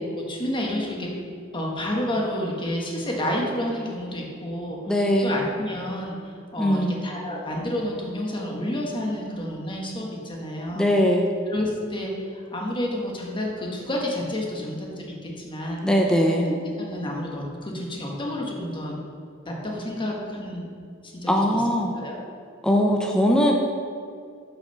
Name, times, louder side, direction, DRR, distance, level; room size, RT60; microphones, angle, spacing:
voice 1, 0.1-1.1 1.5-6.2 6.5-10.9 11.5-15.9 16.5-18.9 19.5-20.7 21.0-21.6 22.0-22.2, left 1 dB, 25° left, -2 dB, 1.3 m, -30 dB
voice 2, 4.9-5.3 6.6-7.0 10.7-11.3 15.8-16.5 21.3-21.9 22.6-23.5, equal, 5° left, 0 dB, 0.6 m, -20 dB
6.7 x 5.6 x 5.7 m, 2.3 s
head